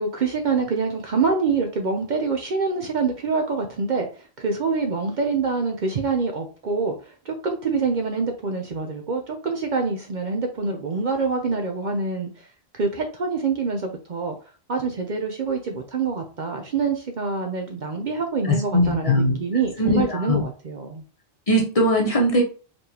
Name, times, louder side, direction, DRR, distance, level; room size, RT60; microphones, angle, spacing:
voice 1, 0.0-12.5 12.7-14.4 14.7-21.0, right 4 dB, 55° right, 3 dB, 0.7 m, -26 dB
voice 2, 18.4-19.4 19.8-20.4 21.5-22.4, equal, 35° left, -1 dB, 1.0 m, -20 dB
4.3 x 3.2 x 2.8 m, 0.36 s
omnidirectional pair, 1.1 m